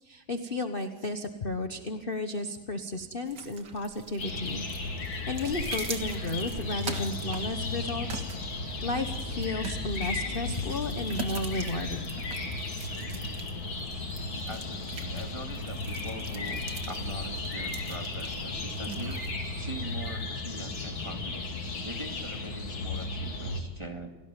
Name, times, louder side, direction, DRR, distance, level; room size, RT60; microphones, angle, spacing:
voice 1, 0.0-4.6 5.0-8.2 8.6-12.2, left 2 dB, 30° left, 6 dB, 1.3 m, -33 dB
sound 1, 3.3-19.3, right 5 dB, 60° right, 2.4 m, -44 dB
sound 2, 4.2-23.6, left 3 dB, 80° left, 3.6 m, -35 dB
sound 3, 13.3-16.1 16.5-18.3 18.6-19.6, right 2 dB, 35° right, 4.3 m, -49 dB
voice 2, 14.5-19.2 19.6-21.5 21.8-24.1, right 1 dB, 15° right, 4 dB, 2.3 m, -42 dB
29.5 x 17.5 x 9.1 m, 1.1 s
omnidirectional pair, 2.2 m